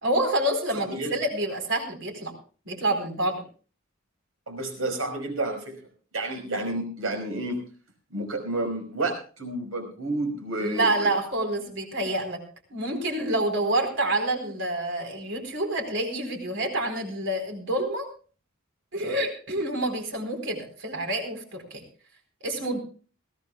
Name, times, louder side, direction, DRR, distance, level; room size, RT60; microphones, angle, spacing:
voice 1, 0.0-2.3 2.6-3.4 10.6-12.4 12.7-18.1 18.9-21.8 22.4-22.8, right 1 dB, 65° right, 4 dB, 4.4 m, -27 dB
voice 2, 0.7-1.2 4.5-5.7 6.1-7.6 8.1-11.1, right 2 dB, 80° right, 5 dB, 5.2 m, -30 dB
21.5 x 16.0 x 2.3 m, 0.37 s
head